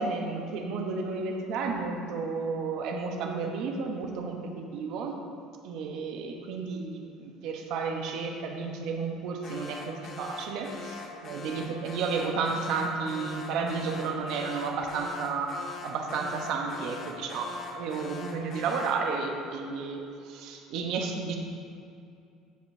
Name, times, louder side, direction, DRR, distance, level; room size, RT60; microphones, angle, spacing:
voice 1, 0.0-5.1 5.6-21.4, right 4 dB, 60° right, 2 dB, 0.8 m, -32 dB
Alarm, 9.4-19.1, left 4 dB, 30° left, 0.6 m, -43 dB
14.5 x 5.1 x 2.7 m, 2.5 s
cardioid pair, 150°, 0 cm